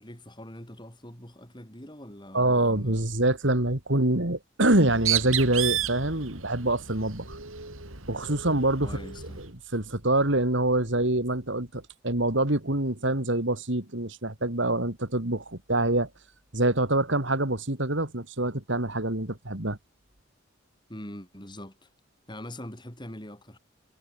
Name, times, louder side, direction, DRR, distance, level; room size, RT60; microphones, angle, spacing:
voice 1, 0.0-3.0 8.8-9.4 20.9-21.9 22.3-23.6, left 1 dB, 20° left, 7.6 m, -43 dB
voice 2, 2.3-7.4 8.1-9.0 9.4-9.5 9.7-16.1 16.5-19.8, right 2 dB, 60° right, 3.0 m, -25 dB
Bird, 4.7-9.5, right 10 dB, 85° right, 6.2 m, -33 dB
head